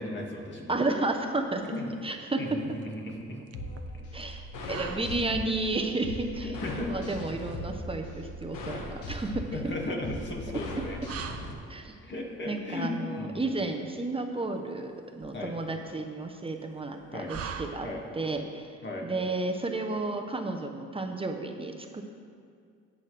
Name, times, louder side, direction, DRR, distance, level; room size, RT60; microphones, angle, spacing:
voice 1, 0.0-0.7 1.7-1.9 2.4-3.4 3.9-4.0 6.4-6.9 9.2-11.0 12.0-13.7 15.3-15.5 17.1-17.3 17.8-18.0 18.8-19.1, left 1 dB, 40° left, -1 dB, 2.3 m, -36 dB
voice 2, 0.7-1.6 2.0-2.4 4.1-6.5 6.9-9.4 11.7-12.0 12.4-17.9 18.1-18.8 19.0-22.0, right 2 dB, 20° right, 4 dB, 0.9 m, -32 dB
sound 1, 1.2-18.3, right 6 dB, 50° right, 0.7 m, -47 dB
sound 2, 3.5-11.5, left 1 dB, 90° left, 1.4 m, -39 dB
17.5 x 6.3 x 3.4 m, 2.3 s
cardioid pair, 90°, 30 cm